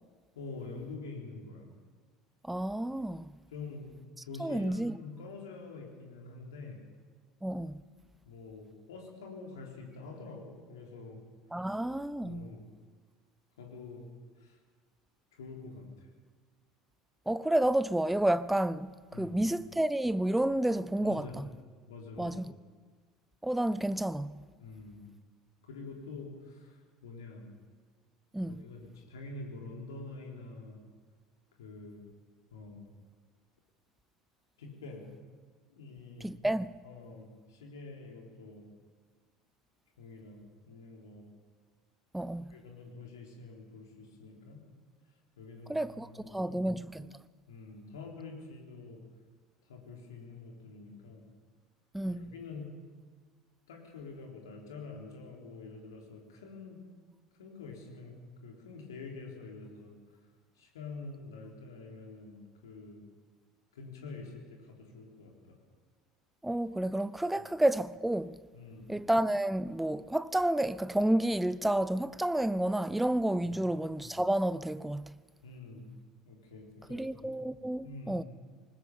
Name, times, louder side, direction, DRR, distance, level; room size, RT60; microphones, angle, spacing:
voice 1, 0.4-1.7 3.5-3.9 4.2-6.8 8.3-11.2 12.2-12.6 13.6-14.1 14.4-14.6 15.3-16.1 19.1-19.4 21.0-21.5 21.9-22.4 24.6-25.0 25.7-27.5 28.4-30.8 31.6-32.1 32.5-32.9 34.6-35.1 35.7-36.3 36.8-38.6 40.0-41.3 42.5-44.6 45.4-46.6 47.5-49.0 49.7-51.3 52.1-52.7 53.7-56.8 57.4-59.9 60.6-63.1 63.7-65.6 68.5-68.9 73.4-73.6 75.4-75.9 76.3-77.4 77.8-78.2, left 3 dB, 70° left, 3.6 m, -46 dB
voice 2, 2.5-3.2 4.4-4.9 7.4-7.8 11.5-12.5 17.3-21.5 22.2-22.5 23.4-24.4 28.3-28.6 36.2-36.8 42.1-42.6 45.7-47.1 51.9-52.3 66.4-68.4 68.9-75.1 76.9-78.2, right 1 dB, 5° right, 0.6 m, -30 dB
20.5 x 20.0 x 7.3 m
figure-of-eight pair, 65°, 2 cm